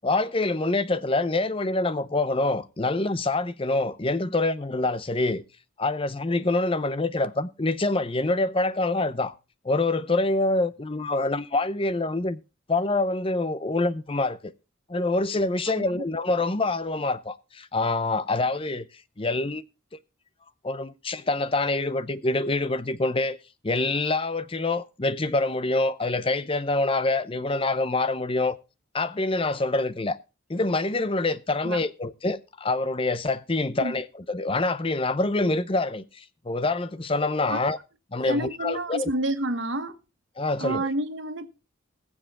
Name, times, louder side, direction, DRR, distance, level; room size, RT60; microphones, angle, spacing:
voice 1, 0.0-5.4 5.8-9.3 9.6-12.4 12.7-14.5 14.9-18.9 19.2-19.6 20.6-23.4 23.6-28.6 28.9-30.2 30.5-37.8 38.1-39.1 40.4-40.9, left 2 dB, 25° left, 0.6 m, -26 dB
voice 2, 15.7-16.0 31.6-31.8 33.8-34.0 37.5-37.6 38.2-40.0 40.6-41.5, right 1 dB, 60° right, 1.2 m, -29 dB
21.0 x 7.3 x 3.7 m
head